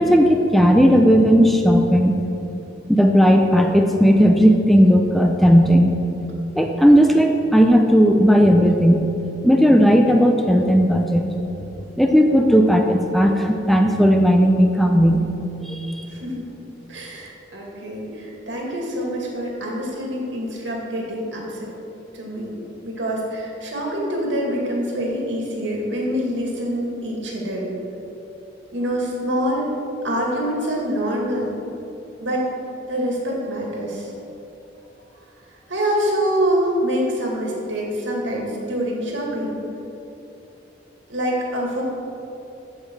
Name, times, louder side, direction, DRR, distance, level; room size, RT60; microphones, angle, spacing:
voice 1, 0.0-2.2 2.9-5.9 6.5-9.1 9.4-11.3 12.0-15.2 15.6-16.0, equal, ahead, 3 dB, 0.5 m, -15 dB
voice 2, 16.1-16.5 16.9-21.7 22.1-22.5 22.8-27.7 28.7-29.7 30.0-31.5 32.2-32.5 32.9-34.1 35.7-39.6 41.1-41.8, equal, 85° right, -2 dB, 2.2 m, -25 dB
14.0 x 5.6 x 4.7 m, 2.9 s
head